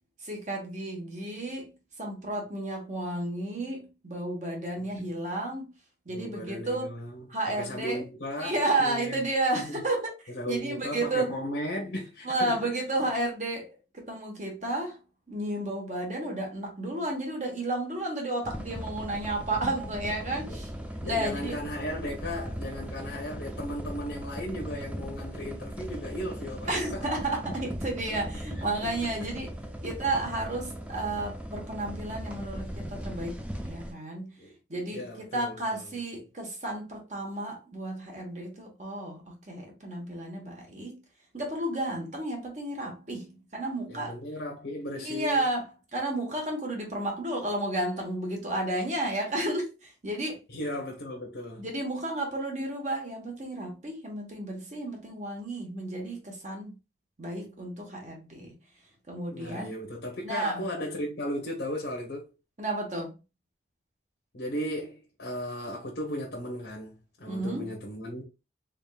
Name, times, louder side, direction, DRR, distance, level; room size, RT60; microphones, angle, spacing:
voice 1, 0.2-5.7 6.0-6.9 7.3-8.0 8.4-11.4 12.2-13.7 13.9-15.0 15.3-20.7 21.0-21.6 26.7-29.6 29.8-34.4 34.7-41.0 41.3-44.2 45.0-50.4 51.6-56.8 57.2-58.5 59.1-59.7 60.2-60.6 62.6-63.1 67.3-67.7, right 2 dB, 40° right, 1.1 m, -32 dB
voice 2, 6.1-9.3 9.5-9.8 10.3-12.6 20.5-20.6 21.0-27.1 28.1-28.3 28.5-29.1 29.8-30.0 34.4-34.5 34.9-35.9 43.9-45.4 50.5-51.7 59.3-62.3 64.3-68.2, equal, 75° left, 0.9 m, -36 dB
sound 1, 18.4-33.9, equal, 5° right, 0.4 m, -38 dB
3.6 x 3.6 x 2.3 m
head